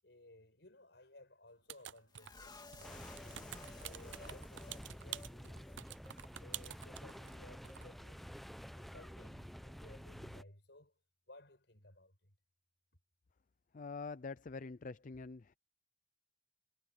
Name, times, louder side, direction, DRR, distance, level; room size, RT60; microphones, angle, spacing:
voice 1, 0.0-3.3 3.8-5.8 6.4-8.2 8.7-10.9 11.3-12.3, left 1 dB, 65° left, 7.7 m, -59 dB
sound 1, 1.7-2.4 2.7-7.4 7.6-7.9, right 12 dB, 80° right, 0.6 m, -48 dB
sound 2, 2.1-5.3 5.6-5.8 6.1-6.3, left 3 dB, 25° left, 2.1 m, -55 dB
sound 3, 2.8-10.4, equal, ahead, 0.7 m, -50 dB
voice 2, 13.7-15.5, left 4 dB, 45° left, 0.5 m, -45 dB
head